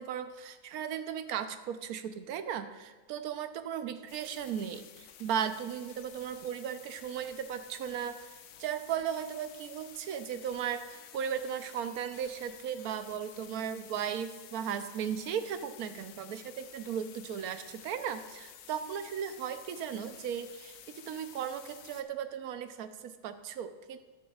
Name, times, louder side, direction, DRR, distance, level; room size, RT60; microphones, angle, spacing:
voice 1, 0.0-8.2 8.6-24.0, right 8 dB, 75° right, 10 dB, 1.1 m, -36 dB
sound 1, 4.1-22.0, left 9 dB, 75° left, 1.1 m, -52 dB
13.0 x 11.0 x 2.4 m, 1.3 s
omnidirectional pair, 1.6 m